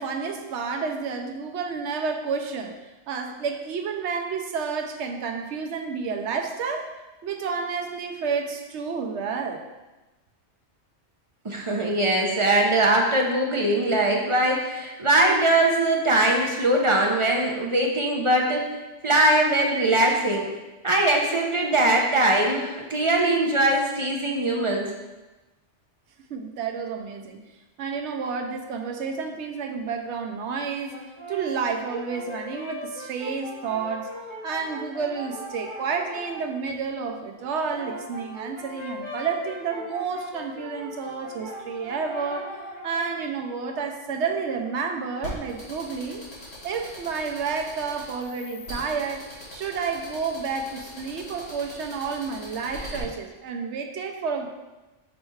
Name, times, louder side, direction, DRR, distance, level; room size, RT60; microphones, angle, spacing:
voice 1, 0.0-2.8 3.1-6.9 7.2-9.7 26.3-27.4 27.8-31.0 31.3-34.1 34.4-42.5 42.8-46.2 46.6-49.2 49.5-54.5, right 5 dB, 70° right, 4 dB, 0.9 m, -30 dB
voice 2, 11.4-18.6 19.0-20.5 20.8-24.9, right 1 dB, 35° right, 0 dB, 0.6 m, -21 dB
Brass instrument, 30.9-36.5 37.4-43.3, equal, 75° left, 2.2 m, -39 dB
sound 1, 45.2-53.0, equal, 55° left, 2.0 m, -40 dB
6.4 x 3.3 x 4.6 m, 1.1 s
omnidirectional pair, 1.3 m